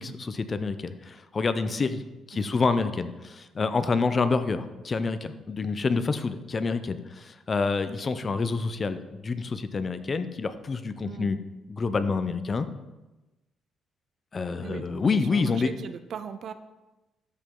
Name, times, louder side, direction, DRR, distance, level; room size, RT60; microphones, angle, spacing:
voice 1, 0.0-2.0 2.3-11.4 11.7-12.7 14.3-15.7, left 4 dB, 35° left, 11 dB, 0.6 m, -27 dB
voice 2, 14.6-16.5, right 7 dB, 60° right, 11 dB, 0.6 m, -39 dB
13.0 x 5.2 x 3.8 m, 1.1 s
cardioid pair, 90°, 0 cm